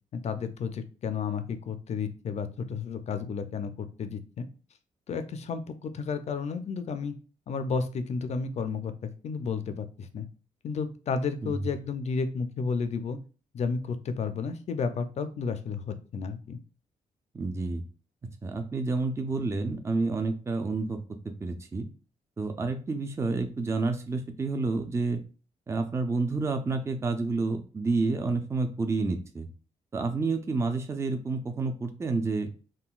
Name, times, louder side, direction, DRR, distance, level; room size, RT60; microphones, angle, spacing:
voice 1, 0.1-4.5 5.1-7.1 7.5-10.3 10.6-13.2 13.5-16.6, left 5 dB, 55° left, 10 dB, 0.4 m, -32 dB
voice 2, 17.3-17.8 18.4-21.0 21.2-21.9 22.4-25.2 25.7-29.5 29.9-32.5, right 3 dB, 20° right, 6 dB, 0.4 m, -29 dB
3.7 x 2.2 x 2.3 m, 0.36 s
cardioid pair, 95°, 14 cm